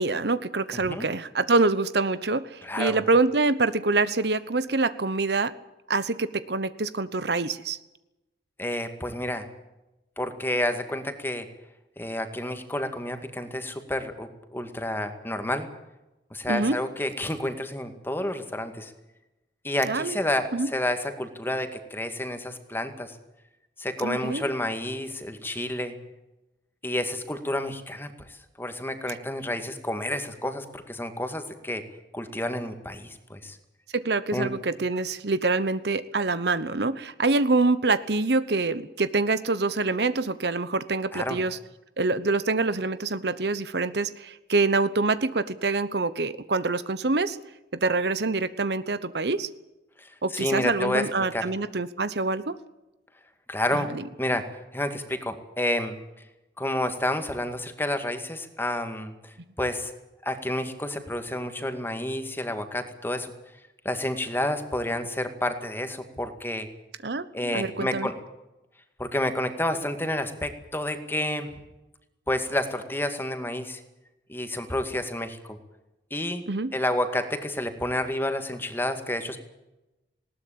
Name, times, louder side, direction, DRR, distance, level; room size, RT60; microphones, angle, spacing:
voice 1, 0.0-5.5 5.9-7.8 16.5-16.8 19.8-20.2 20.5-20.7 24.0-24.5 33.9-41.6 42.0-47.4 47.8-49.5 50.2-52.6 53.7-54.0 67.0-68.1 76.5-76.7, right 3 dB, 65° right, 14 dB, 1.0 m, -25 dB
voice 2, 2.6-3.0 8.6-9.5 10.2-11.5 12.0-15.7 16.3-18.9 19.6-23.2 23.8-26.0 26.8-31.8 32.1-33.6 34.3-34.5 41.1-41.4 50.0-51.0 51.3-51.4 53.5-53.9 54.2-54.4 54.7-56.0 56.6-59.1 59.6-59.9 60.2-63.3 63.8-66.7 67.3-68.1 69.0-71.5 72.3-73.8 74.3-75.6 76.1-76.4 76.7-79.4, left 1 dB, 10° left, 7 dB, 2.1 m, -30 dB
20.0 x 18.0 x 8.7 m, 0.98 s
head